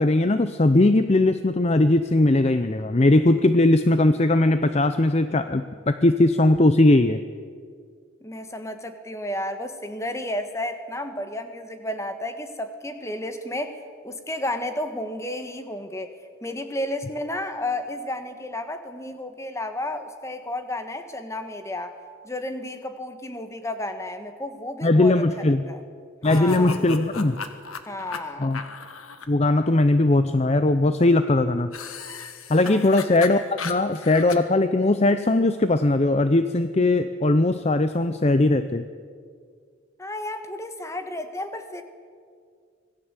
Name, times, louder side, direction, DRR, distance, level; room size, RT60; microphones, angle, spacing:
voice 1, 0.0-7.2 24.8-25.6 26.2-27.4 28.4-28.6 29.3-31.7 32.5-38.8, left 2 dB, 30° left, 11 dB, 0.6 m, -19 dB
voice 2, 8.2-16.1 16.4-22.0 22.2-25.2 25.7-25.8 26.2-26.8 27.9-28.5 32.7-33.0 40.0-41.8, left 1 dB, 15° left, 8 dB, 1.5 m, -32 dB
sound 1, 26.2-29.3 31.7-34.4, left 4 dB, 90° left, 1.8 m, -35 dB
25.5 x 18.0 x 8.2 m, 2.1 s
head